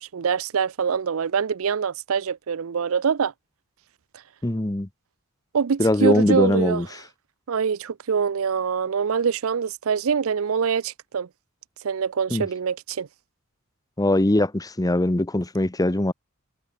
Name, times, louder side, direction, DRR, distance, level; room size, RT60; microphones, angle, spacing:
voice 1, 0.0-3.3 5.5-6.8 7.5-11.3 11.8-13.1, right 6 dB, 70° right, 0.5 m, -24 dB
voice 2, 4.4-4.9 5.8-6.9 12.3-12.5 14.0-16.1, left 1 dB, 15° left, 0.8 m, -21 dB
head